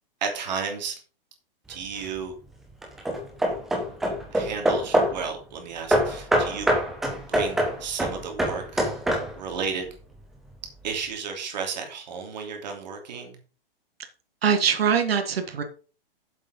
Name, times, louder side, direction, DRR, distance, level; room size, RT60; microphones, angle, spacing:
voice 1, 0.2-0.9 1.7-2.3 4.3-6.7 7.3-8.8 9.3-9.9 10.8-13.4, right 6 dB, 50° right, 3 dB, 2.8 m, -33 dB
Hammer / Wood, 1.7-2.2 2.8-5.3 5.9-9.6, equal, ahead, 0.4 m, -25 dB
voice 2, 14.4-15.6, right 7 dB, 80° right, 7 dB, 1.8 m, -22 dB
7.5 x 7.4 x 5.3 m, 0.36 s
hypercardioid pair, 175°, 29 cm